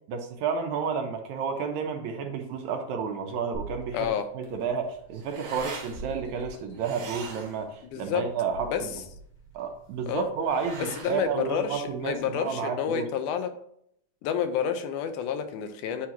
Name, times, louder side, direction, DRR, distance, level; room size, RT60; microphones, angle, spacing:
voice 1, 0.1-8.7 9.5-13.1, right 6 dB, 75° right, 4 dB, 2.0 m, -31 dB
sound 1, 3.5-4.8 5.3-7.5 8.0-8.1, right 2 dB, 60° left, 1.9 m, -43 dB
voice 2, 3.9-4.3 7.9-8.2 8.6-8.8 10.1-10.3 11.0-13.5 14.2-16.1, left 8 dB, 85° left, 8 dB, 2.2 m, -29 dB
sound 2, 4.5-12.4, right 4 dB, 50° right, 1.7 m, -44 dB
8.8 x 3.7 x 3.0 m, 0.69 s
omnidirectional pair, 3.5 m